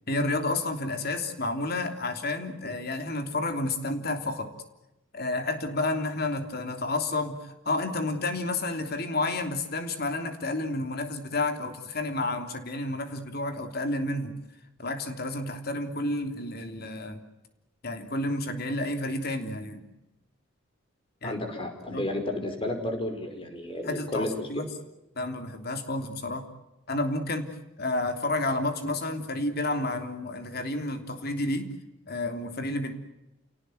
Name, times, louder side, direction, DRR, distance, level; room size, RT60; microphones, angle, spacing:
voice 1, 0.1-4.5 5.1-14.4 14.8-17.2 17.8-19.8 21.2-21.4 21.9-22.1 23.8-24.7 25.1-26.5 26.9-31.7 32.1-32.9, left 2 dB, 50° left, 7 dB, 3.2 m, -30 dB
voice 2, 21.2-24.6, left 1 dB, 25° left, 5 dB, 5.2 m, -32 dB
30.0 x 18.5 x 9.4 m, 0.93 s
head